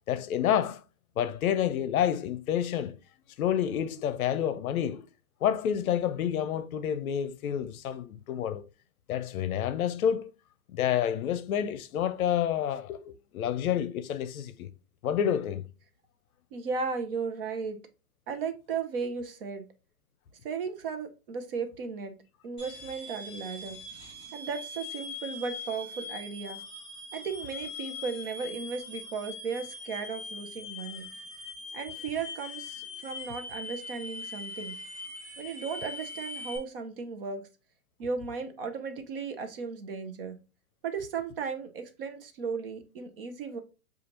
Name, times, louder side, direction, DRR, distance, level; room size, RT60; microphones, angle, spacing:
voice 1, 0.1-0.8 1.2-3.0 3.4-5.1 5.4-8.6 9.1-10.3 10.7-14.7 15.0-15.7, left 9 dB, 65° left, 0.6 m, -29 dB
voice 2, 16.5-17.8 18.3-19.7 20.4-22.2 22.4-23.8 24.3-26.6 27.1-31.1 31.7-34.8 35.4-37.4 38.0-40.4 40.8-43.6, right 5 dB, 40° right, 0.6 m, -35 dB
sound 1, 22.6-36.6, left 3 dB, 25° left, 2.3 m, -42 dB
6.4 x 2.4 x 2.9 m
hypercardioid pair, 155°, 45 cm